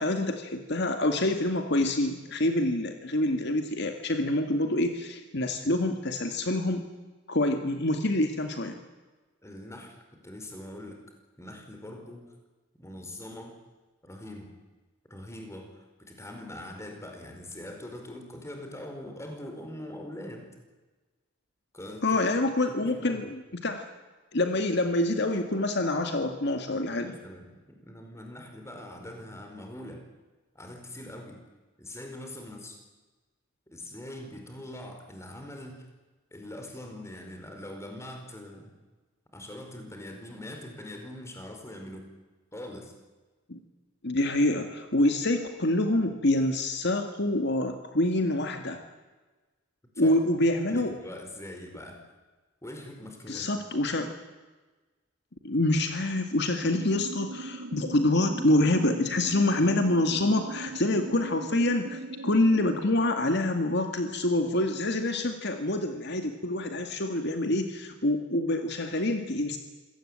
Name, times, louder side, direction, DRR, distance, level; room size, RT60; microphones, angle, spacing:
voice 1, 0.0-6.8 7.3-8.8 22.0-23.9 24.3-27.1 43.5-43.6 44.0-48.8 50.0-50.9 53.3-54.1 55.4-69.6, left 1 dB, 60° left, 6 dB, 2.0 m, -26 dB
voice 2, 9.4-11.0 11.4-12.3 12.7-13.6 14.0-14.6 15.1-20.5 21.7-23.4 26.9-30.1 30.5-31.4 31.8-32.8 33.7-35.9 36.3-38.7 39.3-42.1 42.5-42.9 49.9-50.2 50.5-52.0 52.6-53.5, left 1 dB, 15° left, 4 dB, 4.8 m, -43 dB
sound 1, 56.6-62.8, right 3 dB, 85° right, 0.9 m, -39 dB
26.5 x 17.5 x 8.9 m, 1.2 s
head